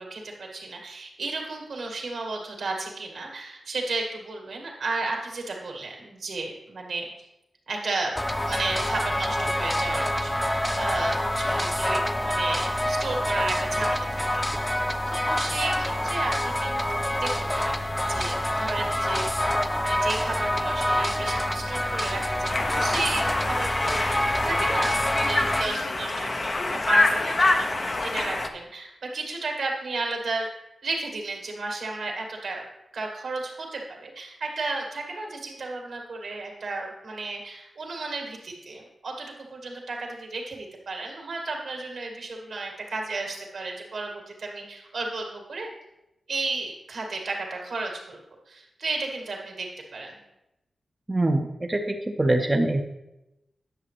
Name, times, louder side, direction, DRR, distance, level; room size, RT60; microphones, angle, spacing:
voice 1, 0.0-7.1 7.7-8.1 8.5-30.5 30.8-32.6 32.9-45.7 46.3-48.2 48.5-50.2, right 3 dB, 80° right, 0 dB, 2.1 m, -33 dB
sound 1, 8.2-25.6, left 1 dB, 10° left, 0.6 m, -26 dB
Conversation, 22.5-28.5, left 2 dB, 45° left, 0.7 m, -26 dB
voice 2, 51.1-52.8, right 1 dB, 25° right, 3 dB, 0.7 m, -24 dB
10.0 x 6.5 x 3.3 m, 0.91 s
cardioid pair, 65°, 0 cm